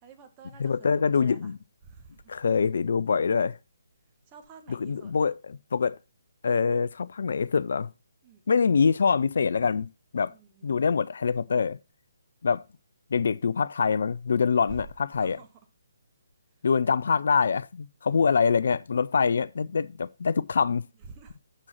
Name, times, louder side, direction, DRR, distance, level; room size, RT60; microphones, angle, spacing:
voice 1, 0.0-1.5 1.8-2.4 4.3-5.3 8.2-8.4 10.3-10.8 14.6-15.5 21.0-21.4, right 4 dB, 20° right, 1.3 m, -48 dB
voice 2, 0.6-1.6 2.3-3.6 4.7-6.0 6.4-7.9 8.5-9.9 10.1-10.3 10.6-11.8 12.4-12.6 13.1-15.4 16.6-20.8, left 5 dB, 50° left, 0.3 m, -24 dB
7.6 x 6.1 x 4.2 m
figure-of-eight pair, 140°, 0 cm